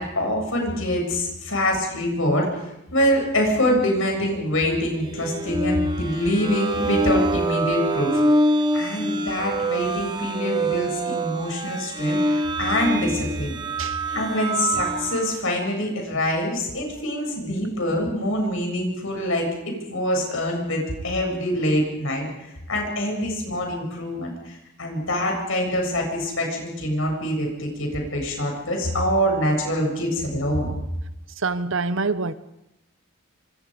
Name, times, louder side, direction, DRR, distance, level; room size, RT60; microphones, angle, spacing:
voice 1, 0.0-2.5 2.9-8.2 8.7-13.5 14.1-22.3 22.7-30.7, equal, 65° left, 7.5 m, -25 dB
sound 1, 5.1-15.3, right 1 dB, 20° right, 1.2 m, -25 dB
voice 2, 31.4-32.3, right 4 dB, 60° right, 0.9 m, -25 dB
26.5 x 26.0 x 5.2 m
head